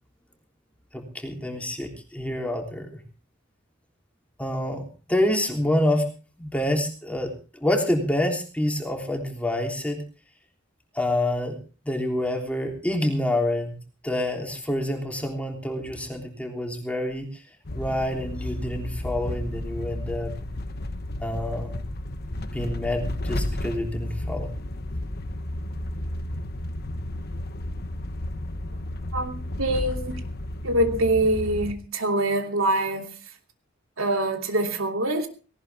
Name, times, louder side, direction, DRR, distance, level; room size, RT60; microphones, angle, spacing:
voice 1, 0.9-3.0 4.4-6.1 6.4-10.0 10.9-11.6 11.8-13.8 14.0-17.4 17.7-20.3 21.2-21.8 22.5-24.5, left 1 dB, 5° left, 2 dB, 3.3 m, -27 dB
sound 1, 17.6-31.7, left 1 dB, 50° left, 1.2 m, -32 dB
voice 2, 29.1-30.2 30.6-33.1 34.0-35.3, right 1 dB, 80° right, 4 dB, 2.9 m, -24 dB
18.5 x 18.5 x 3.5 m, 0.36 s
head